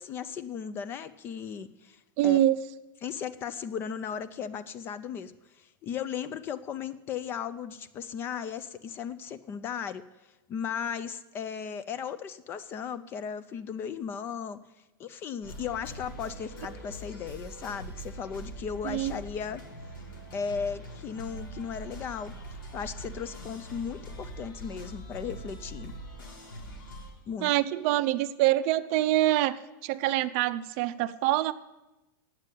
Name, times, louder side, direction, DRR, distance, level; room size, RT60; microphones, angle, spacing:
voice 1, 0.0-2.4 3.0-14.6 15.0-19.6 20.3-22.3 22.7-25.9 27.3-27.5, left 7 dB, 20° left, 14 dB, 0.3 m, -36 dB
voice 2, 2.2-2.6 18.8-19.1 27.4-31.5, right 14 dB, 40° right, 13 dB, 0.5 m, -25 dB
sound 1, 15.4-27.1, right 1 dB, 90° left, 5.2 m, -43 dB
8.9 x 7.6 x 9.0 m, 1.0 s
supercardioid pair, 165°, 11 cm